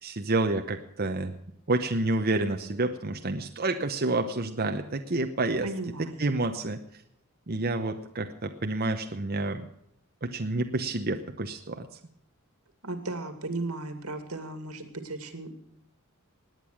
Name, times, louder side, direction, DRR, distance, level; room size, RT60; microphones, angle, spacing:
voice 1, 0.0-1.3 1.7-5.7 6.0-6.8 7.5-9.6 10.2-11.9, right 2 dB, 45° right, 5 dB, 0.9 m, -29 dB
voice 2, 5.6-6.2 12.8-15.5, right 2 dB, 85° right, 8 dB, 2.3 m, -35 dB
19.0 x 9.2 x 6.4 m, 0.74 s
head